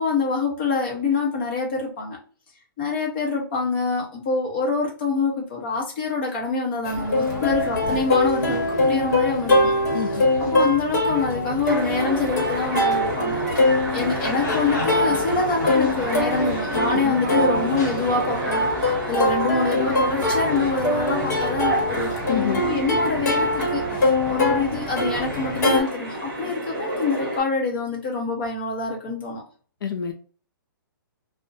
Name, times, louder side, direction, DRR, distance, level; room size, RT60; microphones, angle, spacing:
voice 1, 0.0-2.2 2.8-9.7 10.4-22.2 22.6-29.4, left 4 dB, 25° left, -2 dB, 0.8 m, -26 dB
Plucked string instrument, 6.8-25.8, left 1 dB, 50° left, 1.0 m, -23 dB
sound 1, 11.6-27.4, right 1 dB, 30° right, 1.2 m, -30 dB
voice 2, 22.3-22.6 29.8-30.1, left 9 dB, 70° left, 6 dB, 0.4 m, -26 dB
2.5 x 2.1 x 2.6 m, 0.41 s
hypercardioid pair, 180°, 12 cm